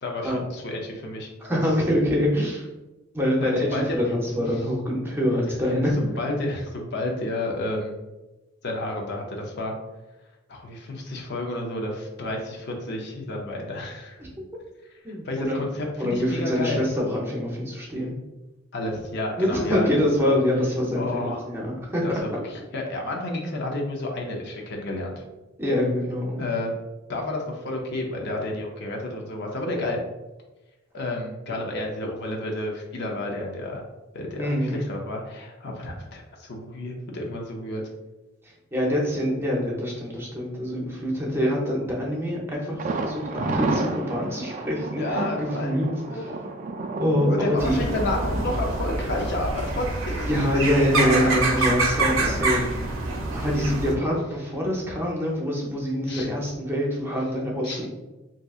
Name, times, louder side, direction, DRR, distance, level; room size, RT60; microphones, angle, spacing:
voice 1, 0.0-1.3 3.4-4.0 6.0-7.9 8.6-9.7 10.5-14.2 15.1-16.8 18.7-19.9 20.2-20.3 20.9-21.4 22.0-25.2 26.4-26.7 27.1-30.0 30.9-33.8 34.1-37.8 45.0-46.4 47.3-51.7 52.2-52.3 53.9-54.0 56.1-56.3 57.6-57.8, left 2 dB, 55° left, 0 dB, 0.6 m, -31 dB
voice 2, 1.4-2.6 3.1-5.9 14.2-14.3 15.0-15.6 16.0-18.1 19.4-22.0 25.6-26.4 34.4-34.8 38.4-46.3 47.0-47.8 50.2-53.1 53.3-57.9, equal, 10° right, -2 dB, 0.7 m, -25 dB
Thunder, 42.8-50.6 50.9-51.0 51.4-51.5, right 3 dB, 40° right, 0.3 m, -32 dB
sound 1, 47.6-53.9, right 2 dB, 75° right, 0.6 m, -26 dB
3.6 x 2.7 x 2.4 m, 1.1 s
head